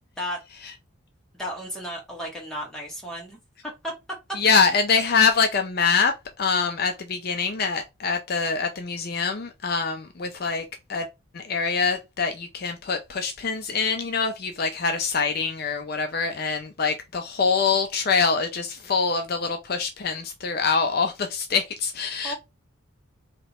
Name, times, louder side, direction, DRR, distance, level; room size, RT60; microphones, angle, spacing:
voice 1, 1.4-3.9 22.2-22.3, equal, 5° left, 1.5 m, -34 dB
voice 2, 4.3-11.1 11.3-22.3, left 5 dB, 45° left, 0.5 m, -24 dB
3.3 x 2.9 x 4.1 m
head